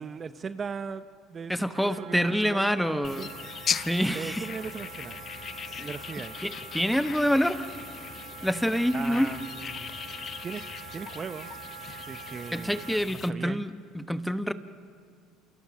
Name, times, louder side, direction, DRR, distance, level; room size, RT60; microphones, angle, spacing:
voice 1, 0.0-3.3 4.1-5.3 5.8-6.5 8.9-10.0 10.4-10.6 10.9-11.5 12.0-12.8 13.1-13.6, right 5 dB, 35° right, 12 dB, 0.8 m, -38 dB
voice 2, 1.5-3.3 3.7-4.5 5.8-5.9 6.4-7.7 8.4-9.3 12.5-13.7 13.9-14.5, equal, ahead, 11 dB, 1.2 m, -26 dB
Wind instrument woodwind instrument, 1.7-13.0, right 12 dB, 70° right, 0.7 m, -45 dB
sound 1, 3.0-13.3, left 7 dB, 40° left, 0.6 m, -38 dB
29.0 x 28.0 x 6.5 m, 2.1 s
hypercardioid pair, 75°, 0 cm